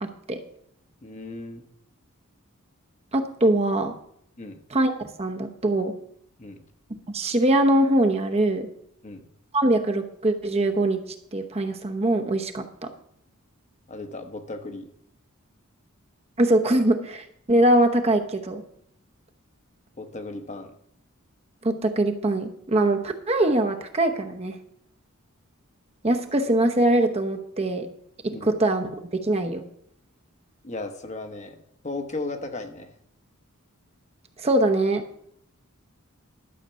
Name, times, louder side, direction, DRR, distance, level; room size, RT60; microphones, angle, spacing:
voice 1, 0.0-0.4 3.1-3.9 4.7-4.9 5.2-5.9 7.1-8.7 9.5-11.0 11.3-12.9 16.4-18.6 21.6-24.6 26.0-27.9 28.2-29.6 34.4-35.0, right 1 dB, 30° right, 5 dB, 0.9 m, -22 dB
voice 2, 1.0-1.6 4.4-4.6 6.4-6.6 9.0-9.2 13.9-14.9 20.0-20.8 28.3-28.5 30.6-31.6 31.8-32.9, left 2 dB, 30° left, 6 dB, 1.0 m, -35 dB
12.0 x 7.4 x 5.5 m, 0.70 s
head